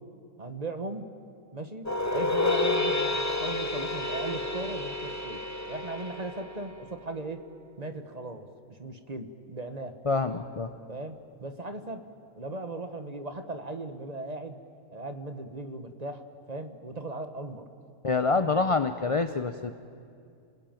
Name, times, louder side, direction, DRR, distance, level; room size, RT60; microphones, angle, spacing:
voice 1, 0.4-1.1 1.5-5.4 5.7-7.4 7.8-8.5 8.8-9.9 10.9-12.0 12.4-14.6 14.9-16.2 16.5-17.6, right 2 dB, 30° right, 8 dB, 1.2 m, -37 dB
sound 1, 1.9-7.1, left 3 dB, 15° left, 1.1 m, -30 dB
voice 2, 10.1-10.7 18.0-19.7, left 4 dB, 45° left, 10 dB, 0.4 m, -26 dB
29.5 x 20.5 x 9.1 m, 2.5 s
omnidirectional pair, 1.6 m